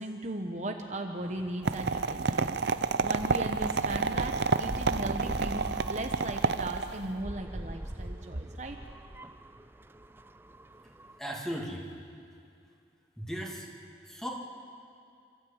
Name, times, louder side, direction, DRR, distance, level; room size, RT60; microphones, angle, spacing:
voice 1, 0.0-2.6 3.0-8.8, right 1 dB, 40° right, 3 dB, 1.1 m, -37 dB
sound 1, 1.2-11.2, right 1 dB, 10° right, 0.4 m, -43 dB
sound 2, 1.6-7.1, right 4 dB, 65° right, 0.6 m, -29 dB
voice 2, 11.2-11.9 13.2-13.7 14.0-14.3, equal, 5° left, -1 dB, 2.4 m, -36 dB
28.0 x 13.0 x 8.8 m, 2.4 s
head